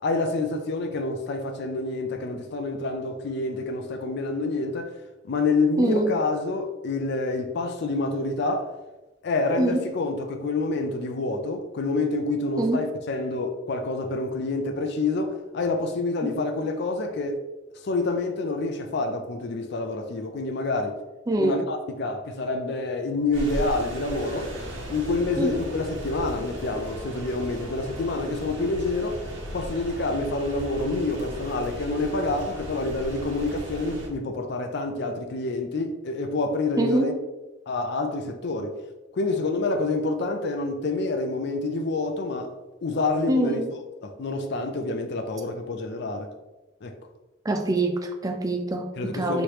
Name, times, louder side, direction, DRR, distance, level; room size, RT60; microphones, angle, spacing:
voice 1, 0.0-4.9 5.2-8.7 9.2-17.4 17.8-21.0 21.4-24.5 24.9-29.2 29.5-37.1 37.7-38.7 39.1-42.5 42.8-43.6 44.0-46.3 46.8-46.9 49.0-49.4, left 3 dB, 55° left, 0.4 m, -27 dB
voice 2, 5.8-6.2 9.6-9.9 12.6-12.8 16.2-16.4 21.3-21.7 25.4-25.6 36.8-37.1 43.3-43.7 47.4-49.4, right 1 dB, 20° right, 0.4 m, -25 dB
sound 1, 23.3-34.1, equal, 75° right, 1.2 m, -36 dB
4.7 x 3.1 x 3.0 m
head